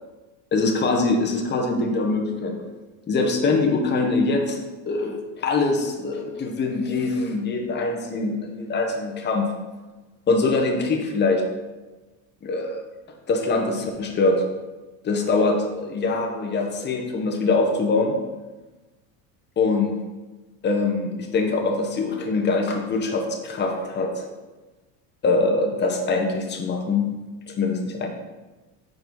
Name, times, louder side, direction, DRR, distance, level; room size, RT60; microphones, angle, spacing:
voice 1, 0.5-2.6 3.1-4.6 4.9-9.5 10.3-11.4 12.4-12.8 13.3-14.4 15.0-18.1 19.6-19.9 20.6-24.3 25.2-27.1 27.5-28.1, left 3 dB, 25° left, 2 dB, 0.8 m, -23 dB
4.6 x 3.9 x 5.2 m, 1.2 s
supercardioid pair, 110°, 42 cm